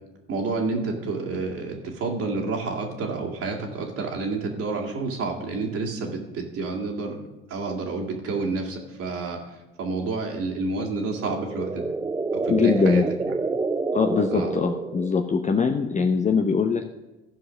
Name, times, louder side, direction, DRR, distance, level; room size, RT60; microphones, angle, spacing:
voice 1, 0.3-9.4 9.8-11.8 12.4-13.3 14.3-14.5, right 3 dB, 50° right, 1 dB, 2.4 m, -29 dB
sound 1, 11.0-15.4, right 3 dB, 15° right, 0.6 m, -28 dB
voice 2, 12.5-13.1 13.9-16.9, left 5 dB, 25° left, 6 dB, 0.8 m, -22 dB
14.5 x 4.8 x 6.3 m, 1.0 s
hypercardioid pair, 65°, 29 cm